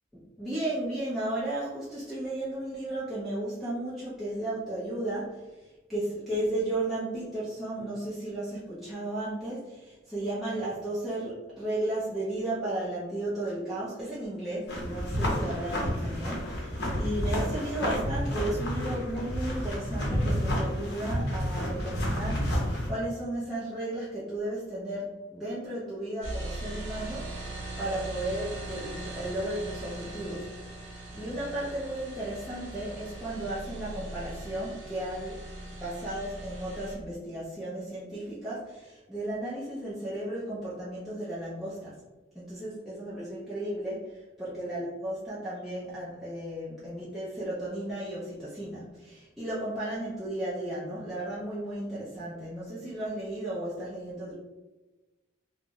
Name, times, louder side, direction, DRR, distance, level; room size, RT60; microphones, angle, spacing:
voice 1, 0.1-35.4 35.8-42.0 42.3-54.3, right 1 dB, ahead, -11 dB, 0.5 m, -34 dB
sound 1, 14.7-22.9, equal, 55° left, 0.7 m, -30 dB
sound 2, 26.2-37.0, right 1 dB, 65° right, 0.7 m, -40 dB
2.4 x 2.0 x 3.5 m, 1.1 s
head